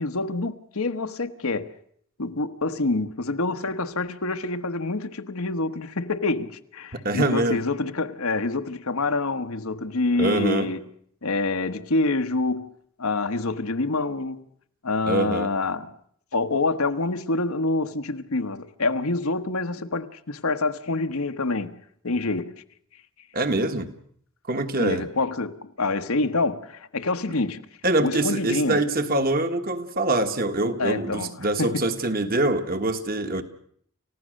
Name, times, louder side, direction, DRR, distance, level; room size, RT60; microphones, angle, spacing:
voice 1, 0.0-1.7 2.2-10.8 11.2-12.7 13.0-14.5 14.8-15.9 16.3-21.8 22.0-22.5 24.8-27.7 28.0-28.8 30.8-31.9, left 3 dB, 80° left, 1.2 m, -26 dB
voice 2, 6.9-7.6 10.2-10.7 15.1-15.5 23.3-23.9 24.5-25.1 27.8-33.4, right 2 dB, 40° right, 1.6 m, -24 dB
29.0 x 15.5 x 6.5 m
head